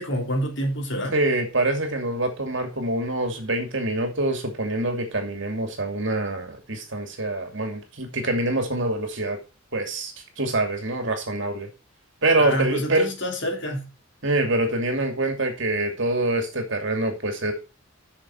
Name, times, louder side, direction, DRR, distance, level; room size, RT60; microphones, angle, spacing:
voice 1, 0.0-1.1 12.4-13.9, equal, 55° left, 2 dB, 3.0 m, -27 dB
voice 2, 1.1-9.4 9.7-10.1 10.4-11.7 12.2-13.1 14.2-17.5, right 2 dB, 60° right, 4 dB, 2.6 m, -25 dB
7.5 x 6.5 x 6.0 m, 0.30 s
head